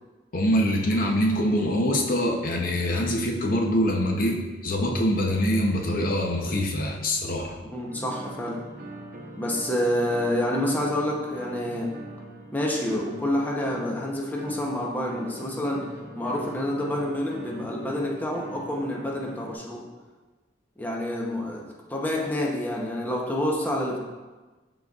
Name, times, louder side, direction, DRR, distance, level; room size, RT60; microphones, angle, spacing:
voice 1, 0.3-7.6, equal, 50° left, 0 dB, 0.7 m, -24 dB
voice 2, 7.7-8.6 9.4-11.9 12.5-15.8 16.2-19.8 20.8-24.0, left 1 dB, 10° left, -2 dB, 0.8 m, -28 dB
sound 1, 7.9-19.5, right 2 dB, 50° right, 0.8 m, -42 dB
11.5 x 4.0 x 2.4 m, 1.2 s
head